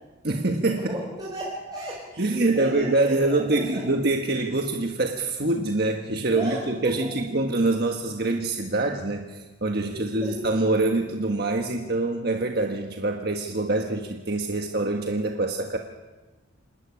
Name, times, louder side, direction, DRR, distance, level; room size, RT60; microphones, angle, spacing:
voice 1, 0.2-0.9 2.2-15.8, right 2 dB, 50° right, 3 dB, 1.5 m, -25 dB
voice 2, 0.9-3.8 6.3-7.1 9.8-10.3, right 1 dB, 20° right, -5 dB, 4.3 m, -35 dB
27.0 x 12.0 x 9.9 m, 1.2 s
head